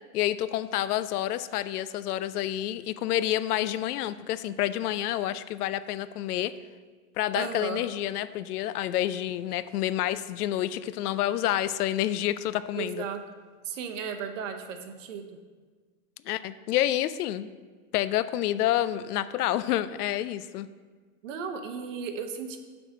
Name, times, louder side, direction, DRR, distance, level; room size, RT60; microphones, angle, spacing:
voice 1, 0.1-6.5 7.2-13.0 16.3-17.5 17.9-20.7, left 13 dB, 85° left, 15 dB, 0.6 m, -28 dB
voice 2, 7.3-7.8 12.8-13.2 13.6-15.2 21.2-22.6, right 6 dB, 55° right, 6 dB, 0.9 m, -35 dB
6.0 x 4.9 x 6.4 m, 1.5 s
supercardioid pair, 170°, 44 cm